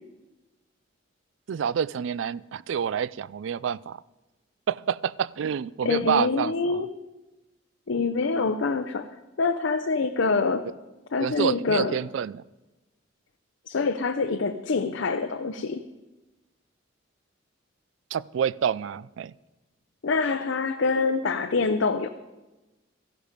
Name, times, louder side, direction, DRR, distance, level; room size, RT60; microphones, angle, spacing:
voice 1, 1.5-4.0 4.7-6.8 11.2-12.4 18.1-19.3, right 8 dB, 70° right, 21 dB, 0.3 m, -28 dB
voice 2, 5.8-6.9 7.9-9.1 9.4-10.7 11.1-12.0 13.7-15.8 20.0-22.1, left 4 dB, 70° left, 7 dB, 0.6 m, -25 dB
14.0 x 10.5 x 5.1 m, 1.1 s
head